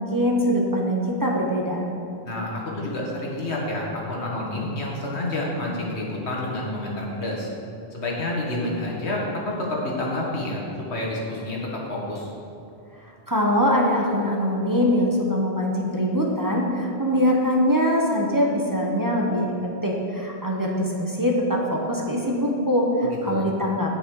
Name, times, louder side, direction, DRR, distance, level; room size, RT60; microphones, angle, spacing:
voice 1, 0.0-1.8 13.3-19.5 19.8-23.9, equal, 20° right, -2 dB, 0.9 m, -23 dB
voice 2, 2.2-7.5 7.9-10.6 10.9-12.3 23.3-23.5, left 1 dB, 85° left, -3 dB, 2.0 m, -29 dB
8.8 x 8.0 x 4.7 m, 2.7 s
omnidirectional pair, 1.1 m